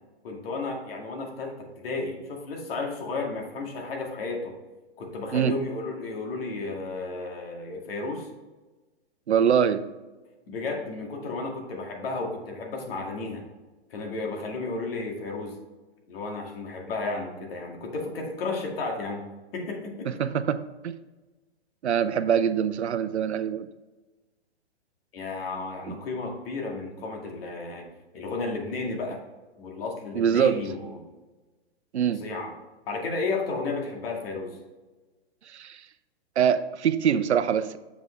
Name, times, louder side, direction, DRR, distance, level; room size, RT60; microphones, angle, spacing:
voice 1, 0.2-4.6 5.0-8.3 10.5-13.4 13.9-15.5 16.1-20.1 25.1-27.9 28.1-29.2 29.6-31.1 32.2-32.5 32.9-34.6, left 3 dB, 60° left, 1 dB, 2.2 m, -33 dB
voice 2, 9.3-9.9 20.1-21.0 21.8-23.7 25.9-26.0 30.1-30.7 31.9-32.2 35.5-35.8 36.4-37.8, right 8 dB, 90° right, 12 dB, 0.7 m, -24 dB
7.1 x 6.2 x 3.2 m, 1.2 s
hypercardioid pair, 135°, 33 cm